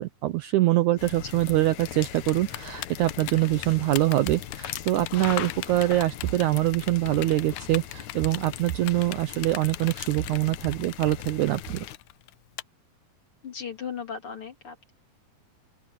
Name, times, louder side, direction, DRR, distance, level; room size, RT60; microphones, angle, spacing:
voice 1, 0.0-11.8, right 16 dB, 75° right, 1.8 m, -24 dB
sound 1, 1.0-12.0, left 11 dB, 65° left, 2.2 m, -39 dB
Typing, 2.3-12.6, left 17 dB, 80° left, 2.2 m, -39 dB
voice 2, 13.4-14.9, left 7 dB, 40° left, 3.4 m, -37 dB
open air
omnidirectional pair, 4.1 m